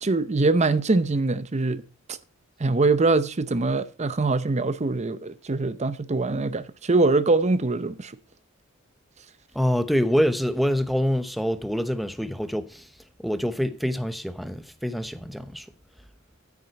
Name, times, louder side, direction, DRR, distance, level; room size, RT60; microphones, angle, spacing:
voice 1, 0.0-1.8 2.6-8.1, right 3 dB, 35° right, 0.7 m, -23 dB
voice 2, 9.5-12.9 13.2-15.7, equal, ahead, 0.8 m, -25 dB
9.8 x 8.8 x 4.1 m
head